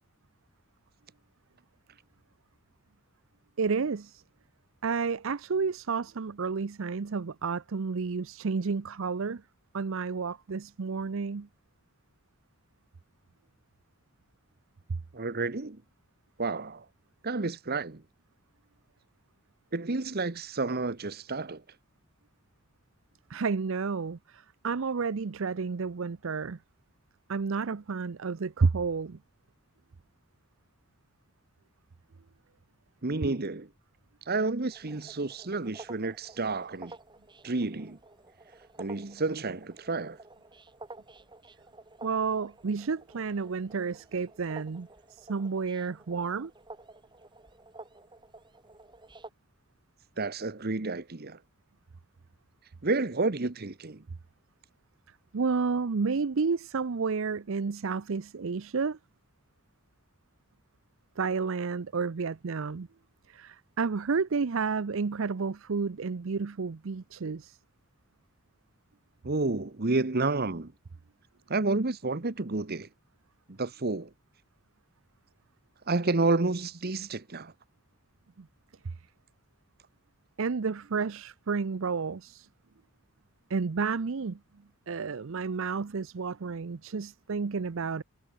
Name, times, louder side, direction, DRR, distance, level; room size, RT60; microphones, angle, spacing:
voice 1, 3.6-4.2 4.8-9.4 9.7-11.5 23.3-26.6 27.3-29.2 42.0-46.5 55.3-59.0 61.2-62.9 63.3-67.6 78.4-78.5 78.8-78.9 80.4-82.5 83.5-84.4 84.9-88.0, right 5 dB, 65° right, 0.6 m, -31 dB
voice 2, 15.1-15.8 16.4-16.8 17.2-18.0 19.7-21.6 33.0-33.7 34.3-36.9 37.4-38.0 38.8-40.2 50.2-51.4 52.8-54.0 69.2-70.7 71.5-72.9 73.6-74.1 75.9-77.5, right 3 dB, 45° right, 1.1 m, -30 dB
sound 1, 34.7-49.3, right 2 dB, 20° right, 3.1 m, -51 dB
head